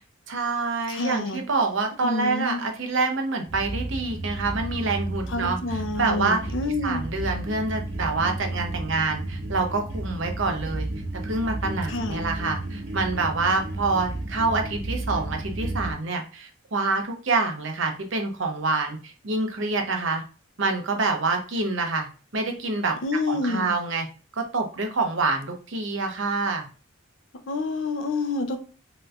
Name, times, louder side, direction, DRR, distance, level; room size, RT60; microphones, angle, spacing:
voice 1, 0.3-6.4 6.8-10.9 11.2-20.2 20.6-23.0 23.3-24.1 24.3-26.7, right 3 dB, 70° right, 4 dB, 0.8 m, -26 dB
voice 2, 0.9-1.4 2.0-2.6 5.3-7.0 11.9-12.2 23.0-23.7 27.5-28.6, left 3 dB, 65° left, 7 dB, 0.6 m, -28 dB
sound 1, 3.5-15.9, right 2 dB, 85° right, 1.2 m, -32 dB
3.2 x 3.0 x 2.4 m, 0.36 s
head